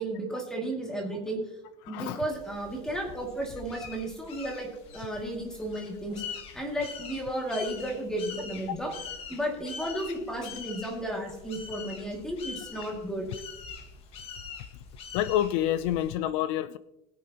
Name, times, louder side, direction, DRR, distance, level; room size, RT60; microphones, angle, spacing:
voice 1, 0.0-1.4 1.9-6.2 6.5-8.9 9.3-13.3, right 1 dB, 5° left, 2.3 m, -33 dB
voice 2, 1.9-2.2 15.1-16.8, left 12 dB, 65° left, 0.5 m, -28 dB
sound 1, 2.2-16.2, left 6 dB, 35° left, 1.4 m, -44 dB
21.0 x 8.4 x 2.9 m
cardioid pair, 175°, 16 cm